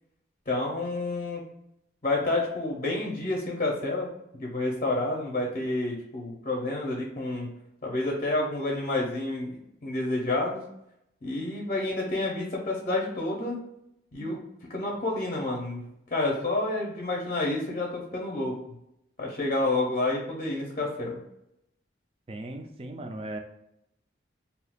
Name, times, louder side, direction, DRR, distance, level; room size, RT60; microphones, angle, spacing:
voice 1, 0.5-1.4 2.0-4.1 4.4-7.5 7.8-10.6 11.2-13.6 14.1-14.4 14.7-15.8 16.1-18.5 19.2-21.2, left 2 dB, 40° left, -2 dB, 0.6 m, -29 dB
voice 2, 22.3-23.4, right 1 dB, 30° right, 4 dB, 0.3 m, -37 dB
2.7 x 2.3 x 3.4 m, 0.78 s
head